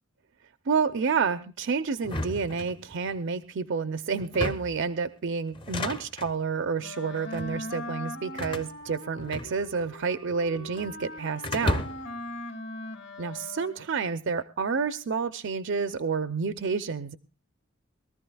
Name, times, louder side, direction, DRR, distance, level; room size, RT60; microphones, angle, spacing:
voice 1, 0.7-11.8 13.2-17.2, right 5 dB, 60° right, 12 dB, 0.6 m, -29 dB
sound 1, 2.0-3.2 4.2-4.9 5.5-6.4 7.2-7.5 8.4-9.9 10.2-10.9 11.4-12.2, left 1 dB, 25° left, 0.7 m, -34 dB
Wind instrument woodwind instrument, 6.8-14.0, left 1 dB, 60° left, 1.9 m, -40 dB
22.5 x 14.0 x 2.3 m, 0.32 s
head